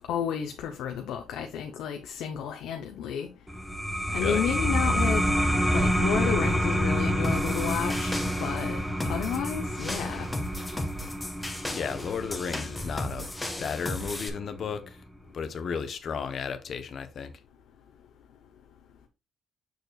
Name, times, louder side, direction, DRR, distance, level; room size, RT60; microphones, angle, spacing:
voice 1, 0.1-3.3 4.1-5.2 5.7-8.8 9.0-10.3, left 8 dB, 85° left, 0.8 m, -31 dB
sound 1, 3.5-14.6, equal, 5° right, 1.2 m, -28 dB
sound 2, 7.2-14.3, left 1 dB, 10° left, 1.4 m, -36 dB
voice 2, 11.7-13.3 13.6-15.0 15.3-17.3, left 6 dB, 55° left, 0.9 m, -33 dB
6.6 x 6.6 x 2.4 m
cardioid pair, 90°, 0 cm